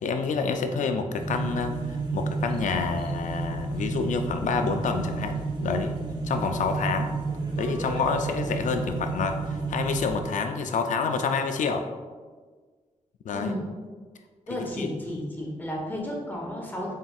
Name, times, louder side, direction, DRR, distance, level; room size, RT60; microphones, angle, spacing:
voice 1, 0.0-6.0 6.2-7.2 7.6-11.9 13.2-13.6 14.8-15.2, left 5 dB, 75° left, 6 dB, 0.4 m, -28 dB
sound 1, 1.2-10.2, right 3 dB, 35° right, 0.6 m, -31 dB
voice 2, 14.5-16.9, left 1 dB, 15° left, -2 dB, 0.8 m, -33 dB
4.1 x 3.5 x 2.3 m, 1.5 s
wide cardioid pair, 115°, 13 cm